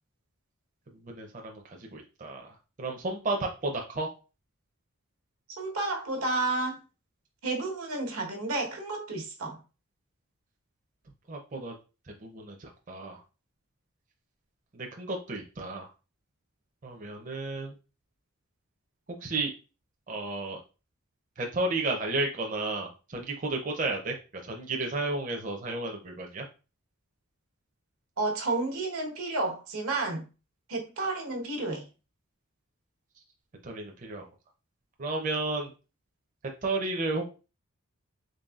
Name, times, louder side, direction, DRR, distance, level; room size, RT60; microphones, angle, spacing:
voice 1, 1.0-4.1 11.3-11.7 12.2-13.2 14.7-15.9 16.8-17.7 19.2-19.5 20.1-20.6 21.4-24.1 24.4-26.5 33.6-34.3 35.0-35.7 36.6-37.2, right 2 dB, 35° right, 0.5 m, -32 dB
voice 2, 5.6-6.8 7.4-9.6 28.2-30.2 30.7-31.8, right 2 dB, 90° right, 1.1 m, -31 dB
4.0 x 3.4 x 2.3 m
head